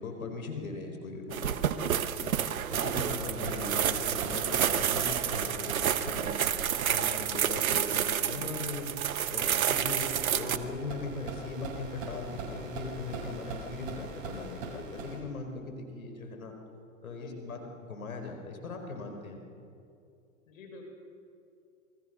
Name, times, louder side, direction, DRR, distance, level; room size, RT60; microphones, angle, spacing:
voice 1, 0.0-1.9 2.2-2.3 2.7-5.7 6.0-6.4 6.9-8.9 9.3-16.5 17.0-19.4, left 3 dB, 90° left, 5 dB, 4.7 m, -39 dB
sound 1, 1.3-10.6, right 9 dB, 85° right, 1.2 m, -29 dB
voice 2, 1.8-2.4 17.1-17.6 20.5-20.9, left 2 dB, 70° left, 3 dB, 6.6 m, -49 dB
sound 2, 2.6-15.2, right 3 dB, 55° right, 7.2 m, -41 dB
28.0 x 21.0 x 6.8 m, 2.5 s
hypercardioid pair, 115°, 41 cm